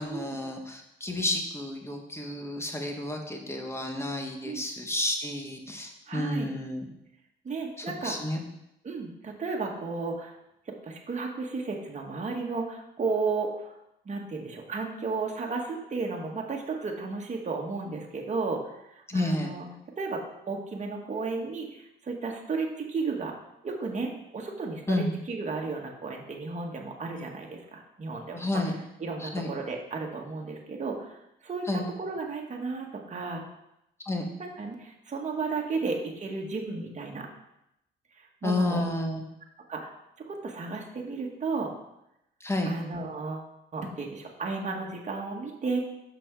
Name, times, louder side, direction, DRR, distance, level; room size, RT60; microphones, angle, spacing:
voice 1, 0.0-6.9 7.8-8.4 19.1-19.5 24.9-25.2 28.3-28.8 29.2-29.5 31.7-31.9 34.1-34.3 38.4-39.2 42.4-42.7, left 1 dB, 15° left, 3 dB, 1.3 m, -31 dB
voice 2, 6.1-6.5 7.4-8.3 8.8-10.4 10.7-13.8 14.0-19.7 20.0-23.3 23.6-28.6 29.0-31.2 31.4-33.4 34.4-37.3 38.1-38.8 39.7-39.9 40.3-41.7 42.6-45.8, right 4 dB, 35° right, 0 dB, 1.5 m, -33 dB
6.2 x 6.0 x 4.7 m, 0.84 s
cardioid pair, 90°, 20 cm